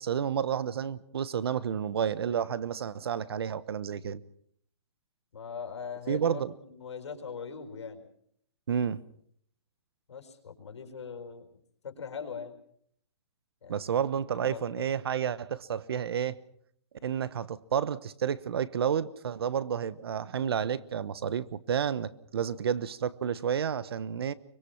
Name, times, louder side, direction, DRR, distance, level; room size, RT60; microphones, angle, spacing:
voice 1, 0.0-4.2 6.1-6.5 8.7-9.0 13.7-16.4 17.0-24.3, right 8 dB, 60° right, 1.1 m, -30 dB
voice 2, 5.3-8.0 10.1-12.6 13.6-14.0 14.4-14.9, left 6 dB, 85° left, 4.7 m, -41 dB
24.0 x 22.0 x 5.9 m
hypercardioid pair, 170°, 14 cm